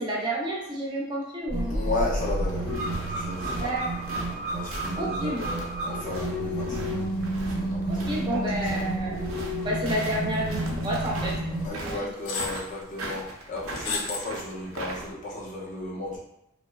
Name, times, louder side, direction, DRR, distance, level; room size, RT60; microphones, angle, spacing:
voice 1, 0.0-1.8 3.6-3.9 5.0-5.4 7.9-9.2 9.6-11.3, right 1 dB, 25° right, -4 dB, 0.4 m, -30 dB
sound 1, 1.5-11.7, right 1 dB, 20° left, 1.0 m, -30 dB
voice 2, 1.6-2.7 3.1-3.8 4.5-6.9 7.4-8.9 11.6-16.2, left 2 dB, 40° left, -5 dB, 0.6 m, -34 dB
sound 2, 1.9-15.1, right 2 dB, 80° right, 0.5 m, -39 dB
sound 3, 10.0-10.4 10.7-10.8 11.7-11.8 12.3-12.6 13.7-14.3 14.7-14.8, left 4 dB, 70° left, 0.3 m, -32 dB
2.6 x 2.1 x 2.2 m, 0.83 s
head